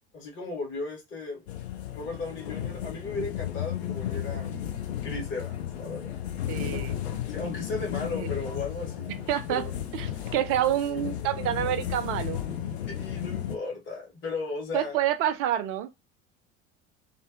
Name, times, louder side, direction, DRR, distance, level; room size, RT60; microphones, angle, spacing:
voice 1, 0.1-4.6 5.0-6.2 7.3-9.2 9.5-9.7 12.9-15.0, left 3 dB, 35° left, 1.2 m, -36 dB
sound 1, 1.5-13.6, left 10 dB, 70° left, 0.6 m, -34 dB
voice 2, 6.5-6.9 8.2-8.3 9.3-9.6 9.9-12.4 14.7-15.9, right 11 dB, 40° right, 0.4 m, -28 dB
2.5 x 2.3 x 2.3 m
figure-of-eight pair, 65°, 35 cm